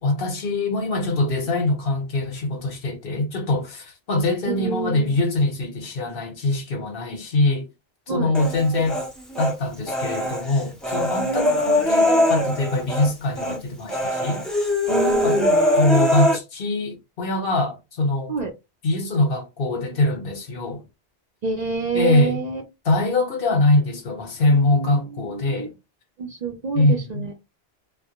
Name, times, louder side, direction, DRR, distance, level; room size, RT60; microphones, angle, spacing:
voice 1, 0.0-7.7 8.1-9.0 9.4-14.4 15.2-15.4 15.8-18.3 18.8-20.8 21.9-22.4 22.8-25.7 26.7-27.3, left 2 dB, 60° left, 0.9 m, -23 dB
voice 2, 4.5-5.1 8.1-8.3 11.2-11.5 14.9-15.6 18.3-18.5 21.4-22.6 24.5-25.7 26.2-27.3, right 5 dB, 55° right, 0.5 m, -28 dB
Human voice, 8.3-9.5 9.9-13.1 13.4-13.6 13.9-16.4, left 1 dB, ahead, 0.3 m, -22 dB
2.1 x 2.1 x 2.8 m
omnidirectional pair, 1.1 m